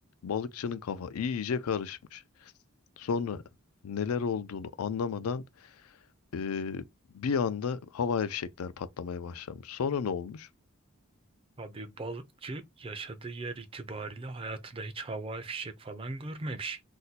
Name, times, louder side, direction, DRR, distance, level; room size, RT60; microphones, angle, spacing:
voice 1, 0.2-2.5 3.0-3.4 3.8-5.7 6.3-6.8 7.1-10.5, left 6 dB, 90° left, 0.4 m, -32 dB
voice 2, 11.6-16.8, right 3 dB, 25° right, 0.4 m, -38 dB
2.7 x 2.2 x 3.9 m
head